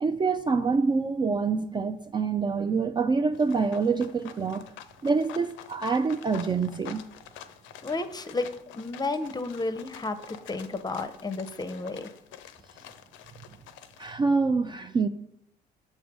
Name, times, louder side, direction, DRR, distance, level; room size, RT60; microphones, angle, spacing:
voice 1, 0.0-4.7 5.0-7.0 14.0-15.1, right 4 dB, 20° right, 0.3 m, -26 dB
sound 1, 3.3-14.1, left 10 dB, 65° left, 0.5 m, -48 dB
voice 2, 7.8-8.5 8.7-12.1, left 3 dB, 20° left, 0.6 m, -32 dB
6.2 x 3.3 x 5.2 m
hypercardioid pair, 60°, 21 cm